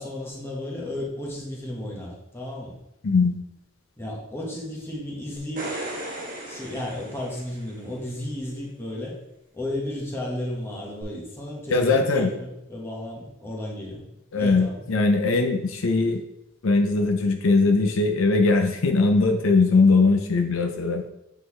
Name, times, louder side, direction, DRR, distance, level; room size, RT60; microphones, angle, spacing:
voice 1, 0.0-2.8 4.0-5.7 6.5-9.1 9.5-14.0 14.3-14.8, left 1 dB, 10° left, -4 dB, 1.4 m, -33 dB
voice 2, 3.0-3.4 11.7-12.3 14.3-16.2 16.6-21.0, left 3 dB, 65° left, 4 dB, 0.5 m, -20 dB
sound 1, 5.4-7.9 11.0-11.1, right 1 dB, 40° right, 1.5 m, -36 dB
7.8 x 3.9 x 3.2 m, 0.90 s
head